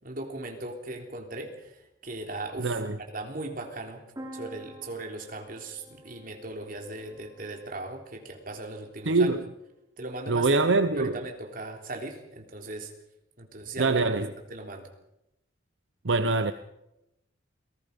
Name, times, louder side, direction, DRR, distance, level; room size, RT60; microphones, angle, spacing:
voice 1, 0.0-2.8 3.1-4.0 4.3-9.3 10.0-10.5 10.9-12.9 13.4-14.0 14.5-14.9, right 2 dB, 45° right, 3.5 m, -38 dB
voice 2, 2.6-3.0 9.1-9.5 10.3-11.2 13.8-14.3 16.0-16.5, right 3 dB, 70° right, 0.9 m, -24 dB
sound 1, 4.2-7.9, right 1 dB, 20° right, 5.5 m, -47 dB
28.5 x 19.0 x 5.3 m
head